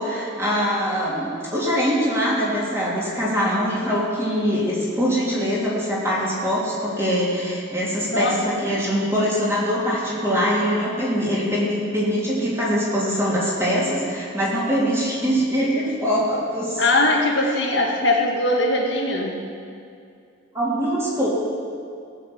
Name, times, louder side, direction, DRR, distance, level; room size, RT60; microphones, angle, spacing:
voice 1, 0.0-16.8 17.4-17.5 20.5-21.3, equal, 15° right, -6 dB, 3.1 m, -23 dB
voice 2, 16.7-19.4, left 2 dB, 60° left, 0 dB, 1.9 m, -20 dB
17.5 x 6.7 x 8.0 m, 2.4 s
head